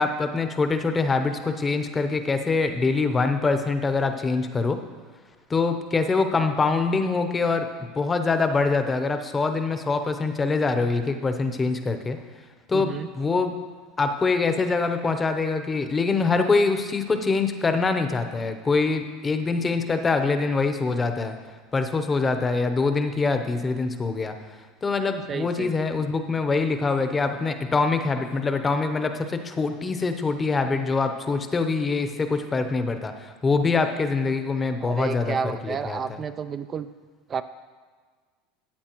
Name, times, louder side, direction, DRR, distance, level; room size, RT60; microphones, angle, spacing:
voice 1, 0.0-4.8 5.5-7.7 7.9-12.2 12.7-13.5 14.0-21.3 21.7-24.3 24.8-35.4 35.6-36.0, left 4 dB, 20° left, 7 dB, 0.8 m, -24 dB
voice 2, 12.7-13.1 25.3-25.7 34.8-36.9 37.3-37.4, right 6 dB, 30° right, 10 dB, 0.3 m, -31 dB
13.0 x 8.4 x 3.0 m, 1.5 s
supercardioid pair, 110°, 0 cm